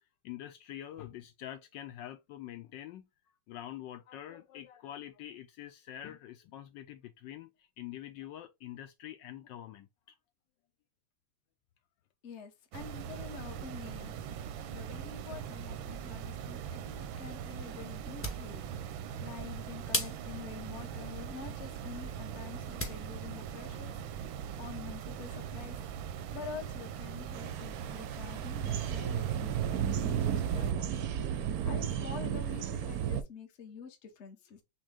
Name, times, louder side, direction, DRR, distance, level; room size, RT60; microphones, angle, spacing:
voice 1, 0.2-3.1 3.5-9.9, left 12 dB, 75° left, 1.2 m, -45 dB
voice 2, 12.2-25.8 26.0-30.9 31.3-34.6, left 6 dB, 45° left, 1.0 m, -47 dB
sound 1, 12.7-30.7, right 8 dB, 85° right, 1.4 m, -41 dB
sound 2, 17.9-23.1, left 1 dB, 15° left, 0.4 m, -41 dB
sound 3, 27.3-33.2, right 9 dB, 70° right, 0.9 m, -33 dB
6.3 x 2.2 x 3.5 m
omnidirectional pair, 2.1 m